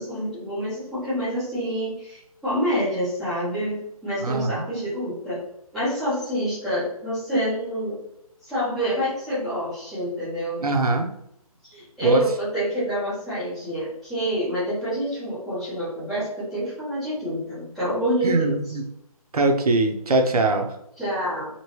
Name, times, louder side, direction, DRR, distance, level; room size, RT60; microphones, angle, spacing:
voice 1, 0.0-5.4 5.7-8.0 8.4-10.7 11.7-18.8 21.0-21.5, equal, ahead, -16 dB, 0.7 m, -27 dB
voice 2, 4.2-4.6 10.6-11.1 12.0-12.2 18.2-18.8 19.3-20.7, right 2 dB, 75° right, 4 dB, 0.7 m, -21 dB
3.1 x 2.9 x 2.8 m, 0.77 s
hypercardioid pair, 170°, 19 cm